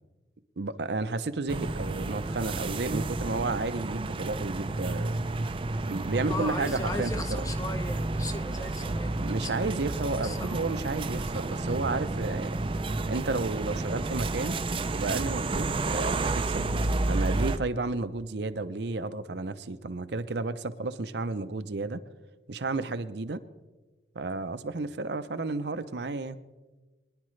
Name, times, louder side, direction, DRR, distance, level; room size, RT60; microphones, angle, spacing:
voice 1, 0.6-5.2 5.9-7.1 9.2-12.6 13.1-14.6 14.9-16.6 17.1-22.0 22.5-23.4 24.1-26.4, right 3 dB, 65° right, 10 dB, 0.7 m, -32 dB
sound 1, 1.5-17.6, right 2 dB, 30° right, 0.5 m, -31 dB
voice 2, 6.3-10.0 10.2-10.7, left 2 dB, 20° left, 8 dB, 0.7 m, -37 dB
23.0 x 10.5 x 3.2 m, 1.2 s
head